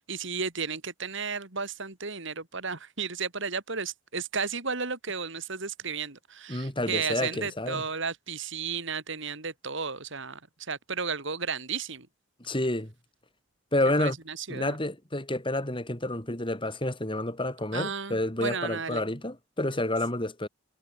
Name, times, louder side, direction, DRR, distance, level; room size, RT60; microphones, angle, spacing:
voice 1, 0.1-12.1 14.0-14.8 17.7-19.0, right 5 dB, 60° right, 2.9 m, -33 dB
voice 2, 6.5-7.8 12.4-12.9 13.7-14.2 14.5-20.5, left 1 dB, 25° left, 3.9 m, -29 dB
head